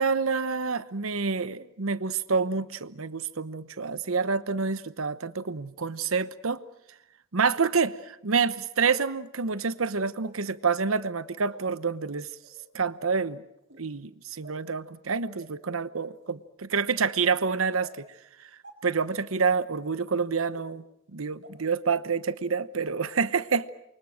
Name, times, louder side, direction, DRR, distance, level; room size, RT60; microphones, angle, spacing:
voice 1, 0.0-6.6 7.3-12.3 12.7-13.4 13.8-18.1 18.4-18.5 18.8-20.8 21.1-23.7, right 5 dB, 90° right, 1.0 m, -28 dB
sound 1, 7.7-7.8 8.7-8.8 10.2-10.4 11.4-11.6 12.4-12.6 13.6-13.9 14.4-14.7 15.4-15.5 16.1-16.3 17.0-17.1 17.8-17.9 18.6-18.7 19.6-19.7 20.5-20.6 21.4-21.5 22.0-22.1, right 3 dB, 60° right, 5.6 m, -50 dB
28.5 x 24.5 x 6.4 m
head